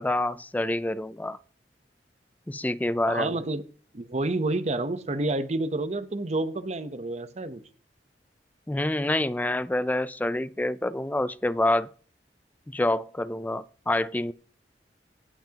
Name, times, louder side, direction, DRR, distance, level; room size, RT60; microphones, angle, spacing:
voice 1, 0.0-1.4 2.5-3.4 8.7-11.9 12.7-14.3, left 1 dB, 10° left, 0.4 m, -27 dB
voice 2, 3.1-3.6 3.9-7.6, right 2 dB, 40° right, 0.8 m, -29 dB
17.5 x 5.9 x 2.9 m
head